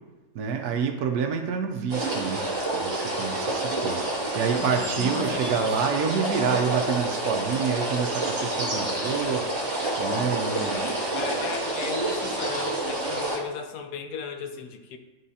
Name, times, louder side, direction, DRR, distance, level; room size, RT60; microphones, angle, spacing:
voice 1, 0.3-2.4 2.7-9.5 10.0-10.8, right 6 dB, 75° right, 5 dB, 1.1 m, -28 dB
sound 1, 1.9-13.4, right 2 dB, 40° right, 1.5 m, -28 dB
voice 2, 4.4-5.7 10.5-15.0, left 6 dB, 75° left, 6 dB, 1.1 m, -36 dB
10.5 x 3.7 x 2.7 m, 1.2 s
omnidirectional pair, 1.8 m